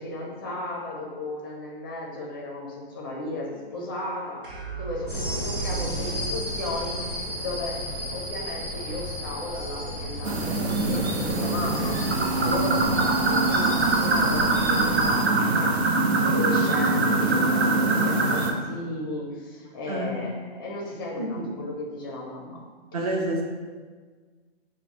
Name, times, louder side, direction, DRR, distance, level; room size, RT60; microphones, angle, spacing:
voice 1, 0.0-7.8 8.1-12.0 12.3-22.6, left 2 dB, 20° left, -3 dB, 0.5 m, -35 dB
sound 1, 4.4-6.7, right 4 dB, 55° right, 1.2 m, -35 dB
sound 2, 5.1-15.2, equal, 10° right, 1.1 m, -34 dB
sound 3, 10.2-18.5, right 2 dB, 80° right, 0.7 m, -23 dB
voice 2, 19.9-20.2 21.2-21.5 22.9-23.5, right 1 dB, 40° right, 0 dB, 0.6 m, -28 dB
6.0 x 2.1 x 2.8 m, 1.5 s
hypercardioid pair, 170°, 32 cm